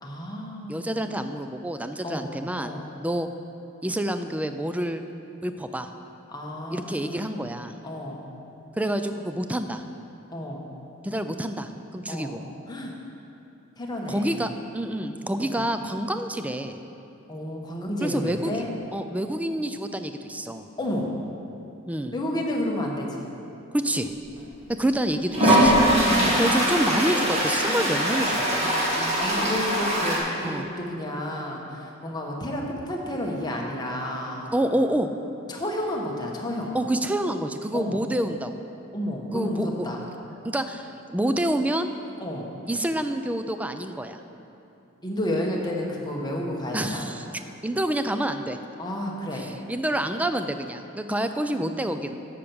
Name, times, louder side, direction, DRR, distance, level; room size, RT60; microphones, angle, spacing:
voice 1, 0.0-0.9 2.0-2.3 2.6-2.9 6.3-7.4 7.8-8.2 10.3-10.7 12.1-12.3 12.7-12.9 13.8-14.5 15.4-15.6 17.3-18.7 20.8-21.1 22.1-23.3 26.1-26.4 28.6-34.5 35.5-36.8 37.7-38.0 38.9-40.0 42.2-42.5 45.0-47.1 48.8-49.5 51.2-51.3 51.6-51.8, left 1 dB, 20° left, -1 dB, 1.1 m, -31 dB
voice 2, 0.7-2.7 3.0-3.3 3.8-5.0 5.4-5.9 6.7-7.7 8.8-9.8 11.0-12.4 14.1-16.8 18.0-18.5 18.9-20.6 21.9-22.1 23.7-24.1 24.8-25.9 26.4-28.7 30.4-30.7 34.5-35.1 36.7-38.5 39.3-39.9 40.5-41.9 42.7-44.2 46.7-47.3 47.6-48.6 49.4-52.2, right 1 dB, 5° right, 8 dB, 0.3 m, -28 dB
Toilet flush, 24.4-24.5 25.3-30.2, equal, 30° right, 1.8 m, -22 dB
8.5 x 5.9 x 7.0 m, 2.8 s
head